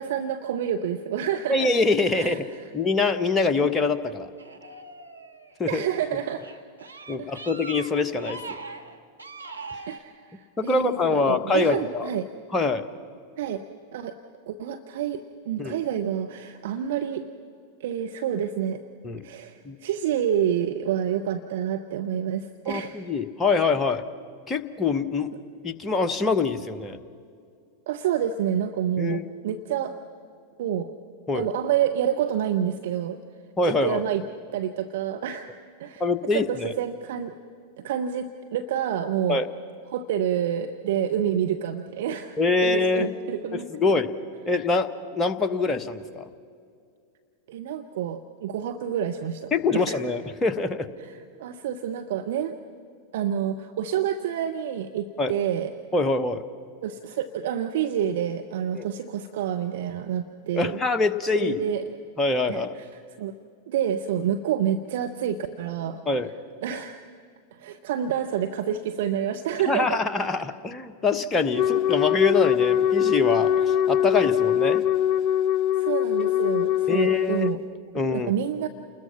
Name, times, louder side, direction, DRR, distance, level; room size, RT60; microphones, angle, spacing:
voice 1, 0.0-1.7 2.2-2.6 5.7-6.4 6.8-7.4 9.9-12.3 13.4-13.6 13.9-14.1 14.5-17.3 17.8-18.8 19.2-23.0 27.9-29.9 30.6-30.9 31.3-33.2 33.6-34.2 34.5-35.5 35.8-36.0 36.3-37.3 37.8-39.4 39.9-43.7 47.5-50.0 51.0-52.6 53.1-55.7 56.8-60.8 61.3-61.8 62.5-63.3 63.7-66.0 66.6-67.0 67.5-70.0 74.0-74.1 75.8-77.6 78.1-78.7, right 9 dB, 55° right, 7 dB, 0.9 m, -28 dB
voice 2, 1.5-2.5 2.7-4.3 5.6-5.8 7.1-8.6 10.6-12.1 12.5-12.8 15.6-15.8 19.0-19.2 19.6-19.8 22.7-24.0 24.5-25.3 25.6-27.0 29.0-29.2 31.3-31.5 33.6-34.0 36.0-36.7 39.3-39.5 42.4-43.1 43.5-44.1 44.4-46.3 49.5-50.9 55.2-55.3 55.9-56.4 58.7-58.9 60.5-61.6 62.2-62.8 66.1-66.3 69.7-74.8 76.9-77.5 77.9-78.3, left 3 dB, 15° left, 8 dB, 1.2 m, -24 dB
sound 1, 4.4-5.8 6.3-10.0, right 3 dB, 85° right, 1.3 m, -40 dB
Wind instrument woodwind instrument, 71.5-77.6, left 10 dB, 35° left, 0.5 m, -22 dB
29.5 x 20.5 x 5.8 m, 2.3 s
figure-of-eight pair, 90°, 0 cm